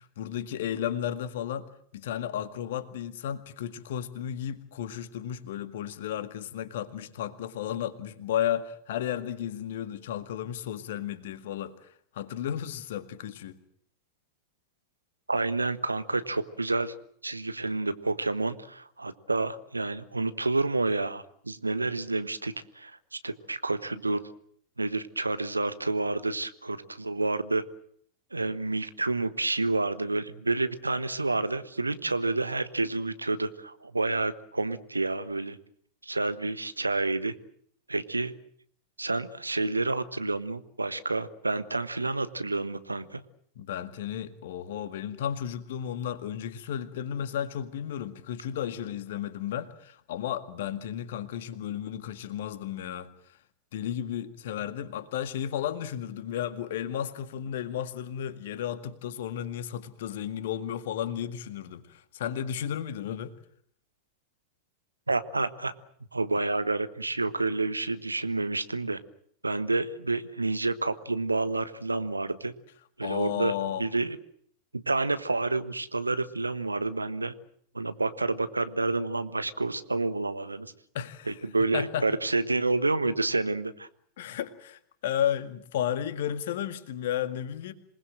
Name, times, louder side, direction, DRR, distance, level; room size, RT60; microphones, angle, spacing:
voice 1, 0.0-11.9 12.1-13.6 43.6-53.1 53.7-63.3 73.0-73.8 80.9-81.4 81.7-82.1 84.2-87.7, left 10 dB, 55° left, 1.9 m, -33 dB
voice 2, 15.3-16.9 17.2-24.2 24.8-27.6 28.3-35.6 36.0-37.3 37.9-38.3 39.0-43.2 65.1-65.7 66.1-69.0 69.4-72.5 73.0-74.2 74.7-77.3 77.7-80.7 81.3-83.9, right 3 dB, 80° right, 1.3 m, -29 dB
27.0 x 20.0 x 7.7 m
figure-of-eight pair, 90°, 0 cm